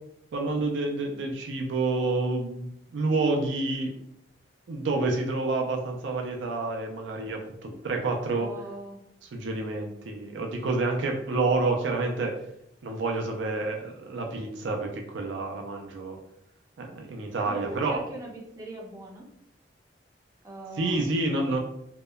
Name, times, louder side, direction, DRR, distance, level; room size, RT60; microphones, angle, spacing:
voice 1, 0.3-3.9 4.7-8.5 9.3-12.3 12.8-16.2 16.8-17.9 20.8-21.6, right 3 dB, 85° right, 2 dB, 0.4 m, -28 dB
voice 2, 8.4-9.0 17.4-19.3 20.4-21.1, right 2 dB, 20° right, -2 dB, 0.5 m, -40 dB
2.8 x 2.0 x 2.2 m, 0.76 s
head